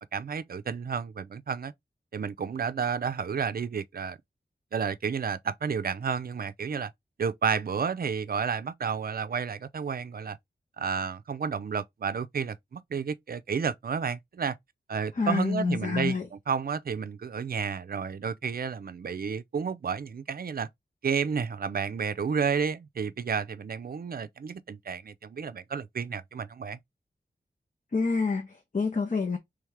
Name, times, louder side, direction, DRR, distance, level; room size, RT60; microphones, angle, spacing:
voice 1, 0.1-1.7 2.1-4.2 4.7-6.9 7.2-10.4 10.8-14.6 14.9-16.2 16.5-20.7 21.0-26.8, right 6 dB, 55° right, 0.4 m, -31 dB
voice 2, 15.1-16.3 27.9-29.4, left 4 dB, 45° left, 0.8 m, -28 dB
3.5 x 3.2 x 3.2 m
wide cardioid pair, 85°, 18 cm